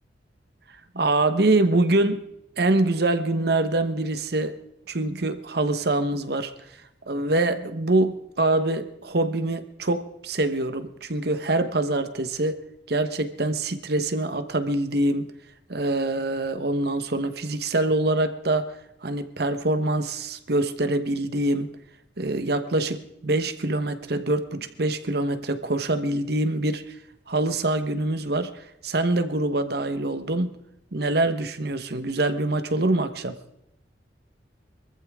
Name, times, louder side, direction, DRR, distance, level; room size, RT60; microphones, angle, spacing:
voice 1, 0.9-2.2 2.6-4.6 4.9-6.8 7.1-12.6 12.9-15.3 15.7-21.7 22.2-26.9 27.3-30.5 30.9-33.4, right 2 dB, 60° right, 10 dB, 1.2 m, -25 dB
23.5 x 14.5 x 3.7 m, 0.83 s
head